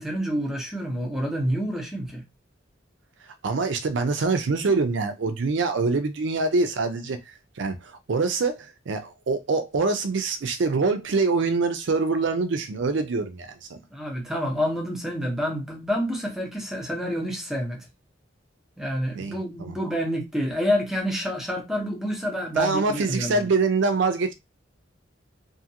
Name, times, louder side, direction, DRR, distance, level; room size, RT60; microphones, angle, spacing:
voice 1, 0.0-2.2 13.9-17.8 18.8-23.5, equal, 5° right, 0.9 m, -28 dB
voice 2, 3.4-13.8 19.1-19.8 22.5-24.3, right 3 dB, 70° right, 0.5 m, -25 dB
2.6 x 2.5 x 2.8 m
head